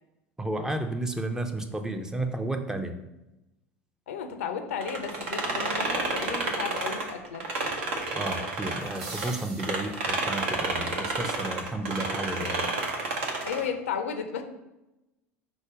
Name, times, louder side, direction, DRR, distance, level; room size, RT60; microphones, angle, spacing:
voice 1, 0.4-3.0 8.1-12.7, right 1 dB, 10° right, 6 dB, 0.5 m, -32 dB
voice 2, 4.1-7.4 13.4-14.4, left 7 dB, 75° left, 6 dB, 0.5 m, -33 dB
sound 1, 4.8-9.3 9.6-13.7, right 3 dB, 70° right, 0.8 m, -30 dB
sound 2, 8.8-10.4, right 3 dB, 50° right, 1.0 m, -43 dB
5.0 x 2.2 x 4.8 m, 0.94 s
hypercardioid pair, 75°, 7 cm